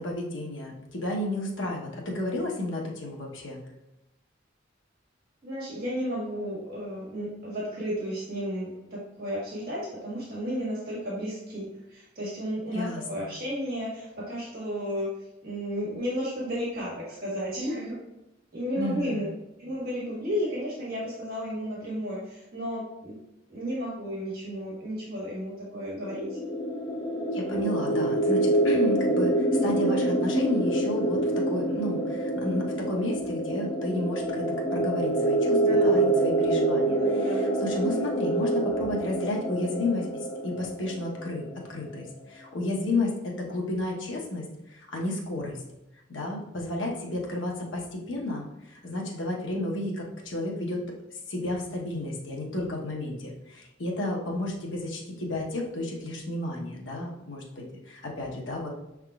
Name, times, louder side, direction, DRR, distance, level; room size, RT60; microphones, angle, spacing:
voice 1, 0.0-3.6 12.7-13.3 18.7-19.3 27.3-40.1 40.4-41.4 41.7-44.4 44.7-45.6 46.1-50.8 51.1-58.7, left 2 dB, 70° left, -2 dB, 1.0 m, -32 dB
voice 2, 5.4-15.1 15.4-18.0 18.5-19.2 19.6-23.1 23.5-26.4 35.6-36.1 36.9-37.5, equal, 50° right, -7 dB, 1.6 m, -33 dB
sound 1, 25.9-41.6, right 1 dB, 20° left, 0.5 m, -26 dB
5.9 x 3.6 x 2.3 m, 0.93 s
head